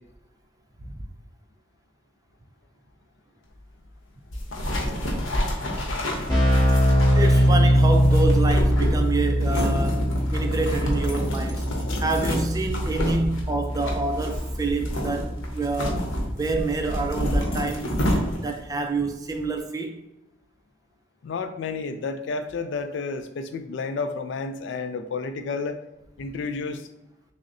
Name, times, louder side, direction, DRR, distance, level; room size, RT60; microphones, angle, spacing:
sound 1, 4.3-18.6, equal, 80° left, 0.8 m, -29 dB
Keyboard (musical), 5.7-5.8 6.0-16.6, equal, 25° left, 1.4 m, -23 dB
voice 1, 7.1-11.7 12.0-16.0 16.3-17.9 18.4-20.0, right 3 dB, 20° right, 5 dB, 0.3 m, -27 dB
voice 2, 21.2-25.8 26.2-26.9, left 4 dB, 65° left, 9 dB, 0.3 m, -31 dB
6.2 x 2.1 x 2.6 m, 0.91 s
head